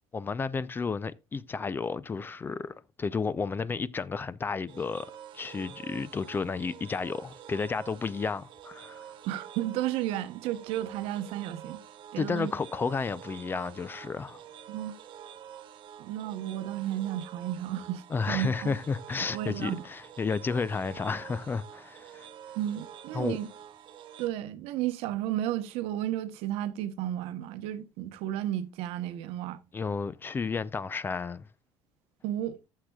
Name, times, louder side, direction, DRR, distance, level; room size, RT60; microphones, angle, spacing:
voice 1, 0.1-5.1 5.3-9.0 12.2-14.4 18.1-22.3 23.1-23.4 29.7-31.5, left 5 dB, 20° left, 0.4 m, -32 dB
sound 1, 4.7-24.3, right 9 dB, 55° right, 1.0 m, -48 dB
voice 2, 9.2-11.8 12.1-12.5 14.7-14.9 16.0-18.8 19.2-19.8 22.6-23.5 24.2-29.6 32.2-32.6, right 12 dB, 80° right, 0.9 m, -33 dB
14.5 x 6.5 x 2.3 m
cardioid pair, 125°, 10 cm